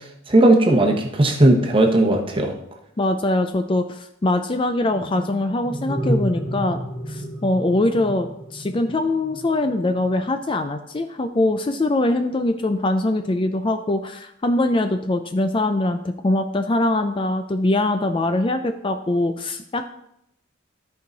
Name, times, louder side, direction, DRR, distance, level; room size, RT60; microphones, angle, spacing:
voice 1, 0.3-2.5, right 1 dB, 25° right, 3 dB, 1.0 m, -16 dB
voice 2, 3.0-6.8 7.1-19.9, left 2 dB, 25° left, 7 dB, 0.4 m, -22 dB
sound 1, 4.8-10.2, equal, 5° left, 1.0 m, -30 dB
13.0 x 4.7 x 4.0 m, 0.78 s
head